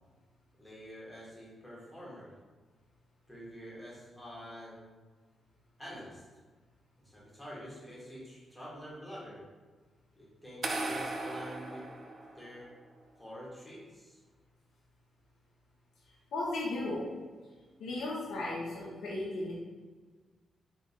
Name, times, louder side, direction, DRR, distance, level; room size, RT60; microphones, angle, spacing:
voice 1, 0.6-2.3 3.3-5.0 5.8-6.2 7.0-9.5 10.2-11.9 12.3-12.7 13.1-14.2, equal, 5° left, -7 dB, 1.2 m, -47 dB
sound 1, 10.6-12.7, right 2 dB, 45° right, 0.4 m, -37 dB
voice 2, 16.3-17.1 17.8-19.6, left 2 dB, 90° left, -5 dB, 0.6 m, -35 dB
3.6 x 2.8 x 2.7 m, 1.4 s
cardioid pair, 120°, 0 cm